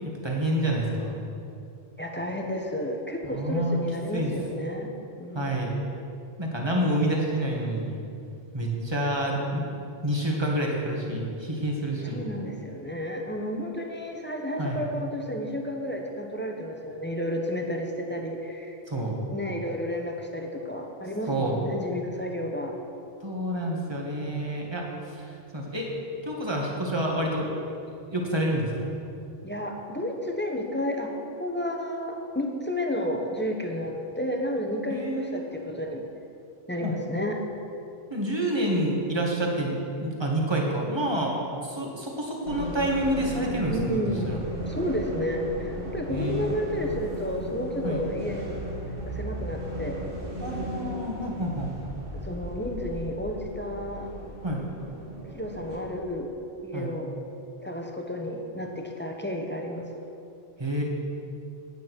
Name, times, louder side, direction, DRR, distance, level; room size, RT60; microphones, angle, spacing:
voice 1, 0.0-1.1 3.2-3.8 4.1-4.3 5.3-5.7 6.4-7.9 8.5-9.6 10.0-12.2 14.6-14.8 18.9-19.2 21.2-21.6 23.2-25.9 26.2-27.5 28.1-28.9 34.9-35.4 36.8-36.9 38.1-41.3 41.6-44.4 46.1-46.5 47.8-48.0 50.4-51.7 54.4-54.6 56.7-56.9 60.6-60.8, right 1 dB, 20° right, -1 dB, 1.7 m, -28 dB
voice 2, 2.0-4.9 5.2-5.7 12.0-18.8 19.3-22.7 29.4-36.0 36.7-37.4 43.7-48.6 49.1-50.0 52.2-54.1 55.3-56.3 56.6-57.1 57.6-59.9, left 1 dB, 10° left, 1 dB, 0.9 m, -31 dB
sound 1, 42.4-55.8, equal, 45° right, 2.1 m, -36 dB
9.7 x 9.2 x 6.2 m, 2.6 s
omnidirectional pair, 1.4 m